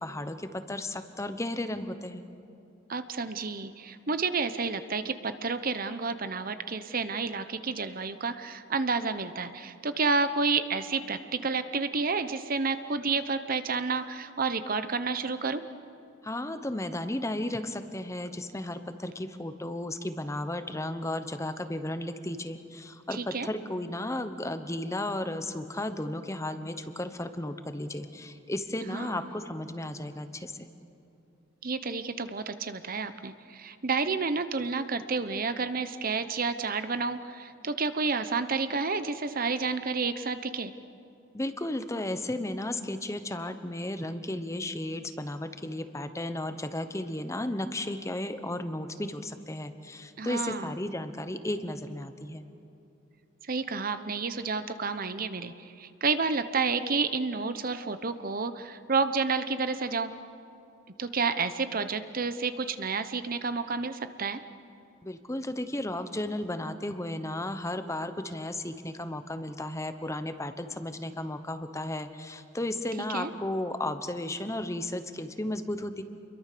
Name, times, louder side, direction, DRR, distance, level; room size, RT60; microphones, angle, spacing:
voice 1, 0.0-2.2 16.2-30.7 41.3-52.4 65.0-76.0, left 1 dB, 15° left, 9 dB, 1.0 m, -34 dB
voice 2, 2.9-15.6 23.1-23.5 28.9-29.2 31.6-40.7 50.2-50.7 53.4-60.1 61.0-64.4 73.1-73.3, right 4 dB, 45° right, 11 dB, 0.9 m, -30 dB
29.0 x 22.5 x 6.8 m, 2.7 s
head